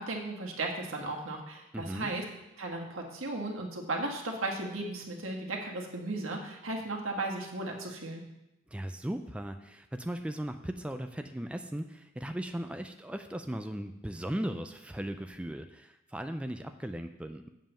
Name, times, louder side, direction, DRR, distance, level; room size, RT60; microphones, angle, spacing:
voice 1, 0.0-2.2 2.6-8.2, right 2 dB, 90° right, 1 dB, 1.6 m, -35 dB
voice 2, 1.7-2.1 8.7-17.5, right 1 dB, 5° right, 6 dB, 0.3 m, -37 dB
7.5 x 5.5 x 7.1 m, 0.91 s
head